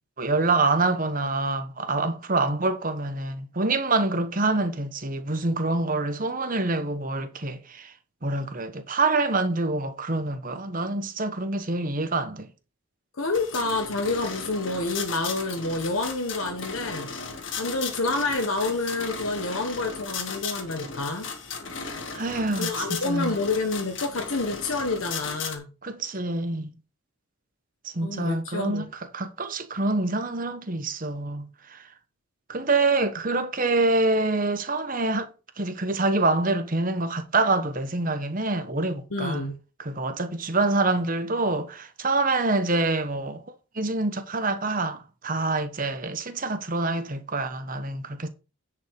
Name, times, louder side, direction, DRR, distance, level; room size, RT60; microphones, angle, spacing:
voice 1, 0.2-7.9 8.2-12.5 22.1-23.4 25.8-26.8 27.8-31.9 32.5-35.3 35.6-39.5 39.8-43.4 43.7-48.3, right 2 dB, 40° right, 1.2 m, -26 dB
voice 2, 13.2-17.1 17.6-21.3 22.6-25.7 28.0-28.9 39.1-39.6, left 3 dB, 75° left, 1.3 m, -28 dB
sound 1, 13.3-25.6, left 5 dB, 60° left, 1.8 m, -36 dB
10.0 x 5.3 x 4.8 m
head